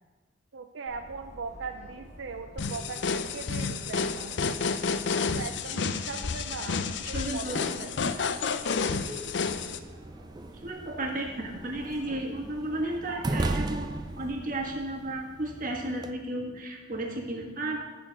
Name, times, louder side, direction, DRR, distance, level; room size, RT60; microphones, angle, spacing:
voice 1, 0.5-4.4 5.3-8.7, right 4 dB, 80° right, 6 dB, 0.5 m, -40 dB
Subway metro underground, 0.9-15.1, right 1 dB, 40° left, 3.8 m, -51 dB
sound 1, 2.6-9.8, left 5 dB, 65° left, 0.5 m, -30 dB
voice 2, 7.1-7.6 8.8-9.3 10.5-13.9 14.2-17.8, right 1 dB, 45° right, 0 dB, 1.6 m, -34 dB
sound 2, 9.4-16.1, right 2 dB, 20° right, 0.4 m, -36 dB
12.5 x 4.4 x 7.5 m, 1.4 s
head